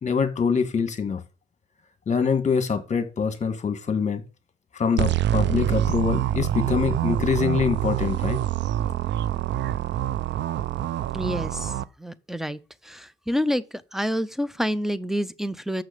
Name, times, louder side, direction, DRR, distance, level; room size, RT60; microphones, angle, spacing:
voice 1, 0.0-1.2 2.1-4.2 4.7-8.4, left 6 dB, 35° left, 1.7 m, -24 dB
sound 1, 5.0-11.8, right 12 dB, 65° right, 0.5 m, -26 dB
voice 2, 11.1-11.7 12.0-13.6 13.9-15.8, equal, ahead, 0.6 m, -28 dB
6.3 x 6.2 x 6.7 m
cardioid pair, 90°, 20 cm